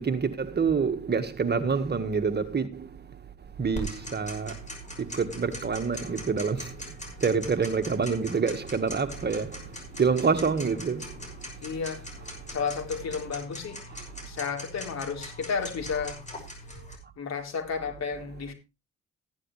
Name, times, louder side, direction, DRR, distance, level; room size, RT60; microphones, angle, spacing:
voice 1, 0.0-11.5 12.4-12.5 13.9-14.0, right 5 dB, 35° right, 1.7 m, -28 dB
Tick-tock, 3.7-17.0, equal, 25° left, 6.2 m, -41 dB
voice 2, 11.6-12.0 12.5-13.8 14.2-16.2 17.2-18.5, left 5 dB, 60° left, 4.0 m, -32 dB
14.5 x 11.5 x 3.2 m
cardioid pair, 90°, 30 cm